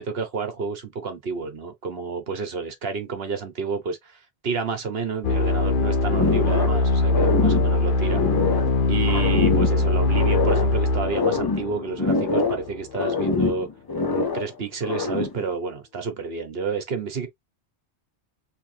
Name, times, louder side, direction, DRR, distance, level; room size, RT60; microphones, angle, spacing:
voice 1, 0.0-8.2 8.9-13.7 14.1-17.3, right 5 dB, 60° right, 1.2 m, -30 dB
sound 1, 5.2-12.8, left 2 dB, 55° left, 0.9 m, -22 dB
sound 2, 6.1-6.8 7.1-8.7 9.1-10.7 11.1-12.7 12.9-14.5 14.8-15.4, left 4 dB, 30° left, 0.4 m, -24 dB
3.5 x 2.7 x 3.2 m
omnidirectional pair, 1.1 m